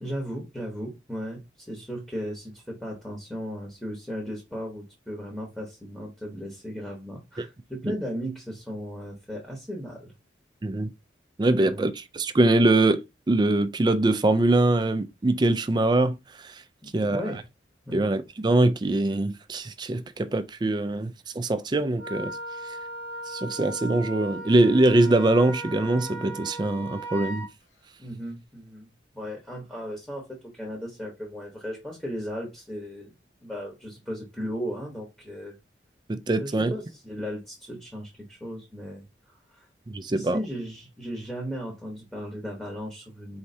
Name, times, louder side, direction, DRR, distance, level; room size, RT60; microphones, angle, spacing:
voice 1, 0.0-10.1 11.6-11.9 16.8-17.4 17.8-18.0 28.0-33.1 33.4-35.6 36.4-39.1 39.5-39.7 40.1-43.4, equal, ahead, 0.9 m, -36 dB
voice 2, 11.4-16.1 16.9-17.2 17.9-21.1 21.4-22.4 23.3-27.5 36.1-36.7 39.9-40.4, right 2 dB, 25° right, 0.4 m, -23 dB
Wind instrument woodwind instrument, 22.0-27.5, right 2 dB, 85° left, 1.1 m, -37 dB
4.5 x 3.2 x 2.7 m
head